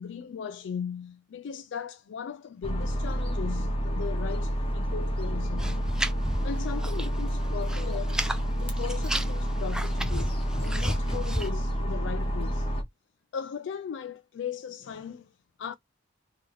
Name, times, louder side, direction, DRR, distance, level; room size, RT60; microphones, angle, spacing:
voice 1, 0.0-5.9 6.4-8.2 8.6-12.7 13.3-15.3 15.6-15.7, left 7 dB, 70° left, 0.3 m, -38 dB
sound 1, 2.6-12.8, equal, 30° left, 0.9 m, -29 dB
sound 2, 5.6-7.2 7.4-8.4 8.8-11.5, right 1 dB, 5° right, 0.4 m, -33 dB
3.1 x 2.7 x 3.6 m
head